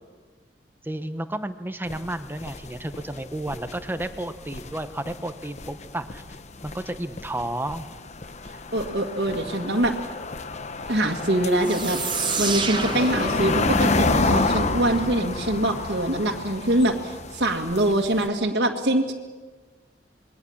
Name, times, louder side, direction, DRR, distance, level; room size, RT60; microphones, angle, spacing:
voice 1, 0.8-6.2 6.6-7.9 9.5-9.6, right 1 dB, 10° right, 9 dB, 0.9 m, -32 dB
sound 1, 1.9-18.3, left 3 dB, 40° left, 0.9 m, -30 dB
voice 2, 8.7-10.0 10.9-12.0 12.4-19.1, right 1 dB, 70° right, -1 dB, 2.0 m, -24 dB
sound 2, 11.6-16.2, right 3 dB, 25° right, 1.4 m, -30 dB
27.0 x 22.0 x 7.2 m, 1.4 s
head